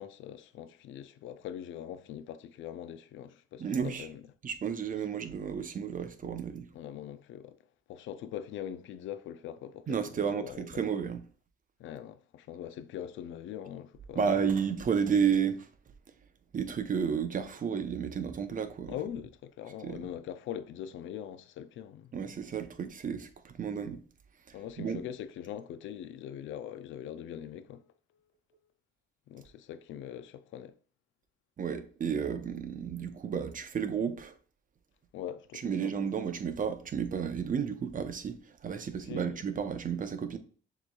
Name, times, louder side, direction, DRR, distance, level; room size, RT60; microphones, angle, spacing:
voice 1, 0.0-4.2 6.7-7.6 7.9-10.8 11.8-14.3 18.9-22.1 24.5-27.9 29.3-30.7 35.1-35.9 39.1-39.4, left 10 dB, 80° left, 0.4 m, -42 dB
voice 2, 3.6-4.1 4.4-6.7 9.9-11.2 14.1-15.7 16.5-19.0 19.8-20.0 22.1-24.0 24.5-25.0 31.6-34.4 35.5-40.4, right 7 dB, 45° right, 0.7 m, -32 dB
6.7 x 3.1 x 2.3 m
cardioid pair, 90°, 20 cm